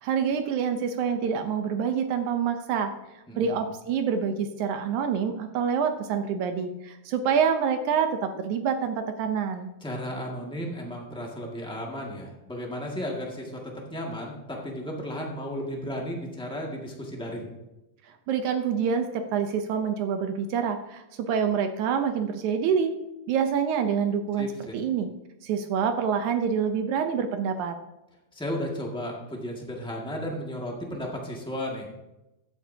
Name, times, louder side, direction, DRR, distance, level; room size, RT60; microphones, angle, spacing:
voice 1, 0.0-2.9 3.4-9.7 18.3-22.9 23.3-24.5 24.7-25.1 25.4-27.8, right 7 dB, 75° right, 7 dB, 1.9 m, -26 dB
voice 2, 3.3-3.6 9.8-17.5 24.4-24.7 28.3-32.0, equal, 5° left, -2 dB, 0.4 m, -34 dB
15.5 x 11.0 x 2.8 m, 0.99 s
omnidirectional pair, 3.9 m